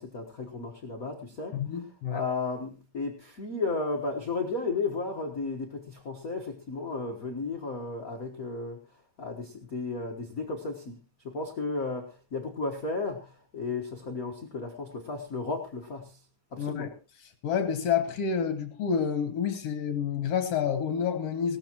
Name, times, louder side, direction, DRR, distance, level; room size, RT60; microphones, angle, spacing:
voice 1, 0.0-1.6 2.1-8.8 9.2-11.0 11.2-16.2 16.5-16.9, left 3 dB, 80° left, 0.7 m, -34 dB
voice 2, 1.5-2.2 16.6-16.9 17.2-21.6, left 7 dB, 60° left, 1.8 m, -29 dB
18.5 x 14.0 x 3.0 m
omnidirectional pair, 3.9 m